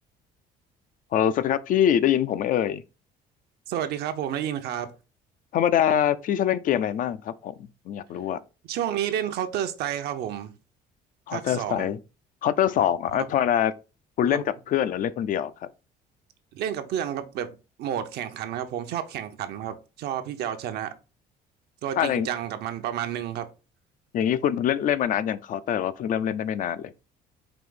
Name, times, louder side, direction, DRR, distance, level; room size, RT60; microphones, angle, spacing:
voice 1, 1.1-2.8 5.5-7.5 7.9-8.4 11.3-12.0 12.4-13.7 14.2-15.5 22.0-22.3 24.1-26.9, left 10 dB, 55° left, 0.4 m, -24 dB
voice 2, 3.7-4.9 8.7-10.5 11.3-11.9 13.1-13.3 14.3-14.5 16.5-20.9 21.8-23.5, right 10 dB, 75° right, 0.7 m, -30 dB
4.9 x 2.6 x 3.8 m
cardioid pair, 110°, 17 cm